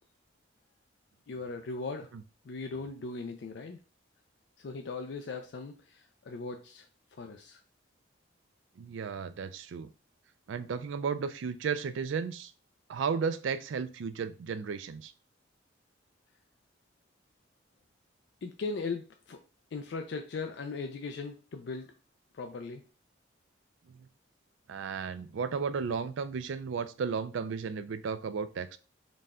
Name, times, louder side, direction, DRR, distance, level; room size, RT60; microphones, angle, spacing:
voice 1, 1.3-2.1 2.4-3.8 4.6-6.9 7.1-7.6 18.4-19.4 19.7-21.9 22.3-22.8, left 4 dB, 60° left, 5 dB, 0.4 m, -38 dB
voice 2, 8.8-9.9 10.5-12.5 12.9-15.1 24.7-28.8, right 6 dB, 75° right, 12 dB, 0.4 m, -34 dB
4.0 x 2.2 x 3.5 m, 0.34 s
head